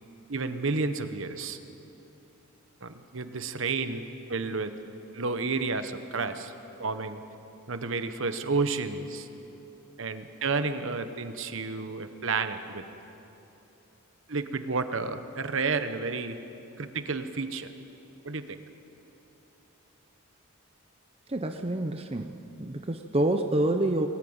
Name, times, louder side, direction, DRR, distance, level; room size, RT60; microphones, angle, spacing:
voice 1, 0.3-1.6 2.8-4.7 5.1-6.5 6.8-7.2 7.7-9.3 10.0-12.8 14.3-16.4 16.8-17.7 18.2-18.6, right 4 dB, 60° right, 9 dB, 1.1 m, -31 dB
voice 2, 21.3-24.1, right 1 dB, 25° right, 5 dB, 0.7 m, -27 dB
22.0 x 15.0 x 8.8 m, 3.0 s
head